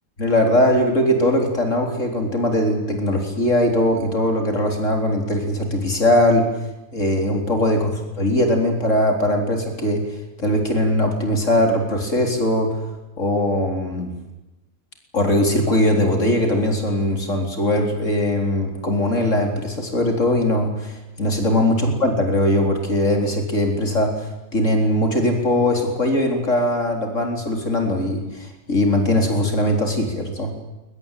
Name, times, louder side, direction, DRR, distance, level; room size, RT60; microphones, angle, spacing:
voice 1, 0.2-6.5 6.9-10.0 10.4-12.8 13.2-14.1 15.1-20.9 21.2-24.3 24.5-30.5, left 1 dB, 60° left, 3 dB, 4.5 m, -20 dB
22.0 x 20.0 x 9.2 m, 1.0 s
omnidirectional pair, 1.5 m